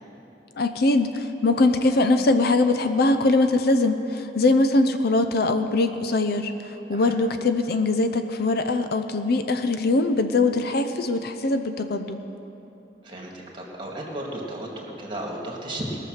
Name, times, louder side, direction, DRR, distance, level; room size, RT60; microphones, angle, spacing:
voice 1, 0.6-6.5 6.9-12.2, left 2 dB, 60° left, 8 dB, 0.6 m, -22 dB
voice 2, 13.0-15.9, right 1 dB, 30° right, -1 dB, 2.2 m, -34 dB
19.5 x 6.8 x 6.6 m, 3.0 s
head